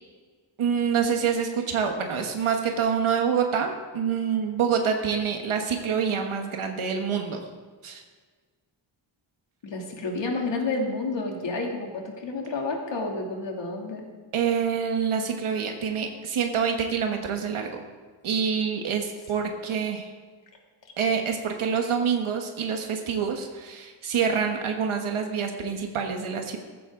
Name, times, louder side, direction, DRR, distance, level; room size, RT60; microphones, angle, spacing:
voice 1, 0.6-7.4 7.8-8.0 14.3-17.8 18.2-20.1 21.0-26.6, right 6 dB, 90° right, 4 dB, 1.4 m, -26 dB
voice 2, 9.6-14.0 19.4-19.5, left 3 dB, 65° left, 0 dB, 2.8 m, -30 dB
14.5 x 14.5 x 3.8 m, 1.5 s
wide cardioid pair, 115°, 48 cm